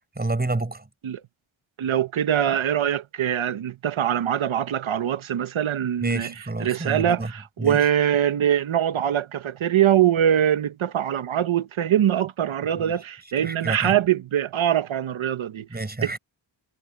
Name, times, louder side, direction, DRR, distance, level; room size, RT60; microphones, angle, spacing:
voice 1, 0.2-0.9 6.0-7.3 7.6-7.8 12.8-12.9 13.4-14.0 15.7-16.2, right 2 dB, 20° right, 5.8 m, -29 dB
voice 2, 1.8-6.3 6.6-15.7 16.0-16.2, right 10 dB, 75° right, 1.3 m, -23 dB
wide cardioid pair, 115°, 48 cm